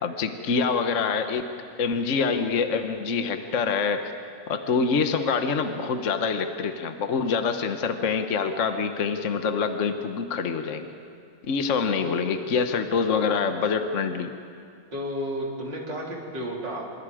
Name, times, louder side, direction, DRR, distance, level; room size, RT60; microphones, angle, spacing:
voice 1, 0.0-1.4 1.8-4.1 4.5-10.9 11.5-14.3, left 5 dB, 45° left, 7 dB, 1.2 m, -25 dB
voice 2, 11.9-12.2 14.9-17.0, equal, 65° right, -2 dB, 4.3 m, -32 dB
28.5 x 26.5 x 5.0 m, 2.3 s
omnidirectional pair, 2.1 m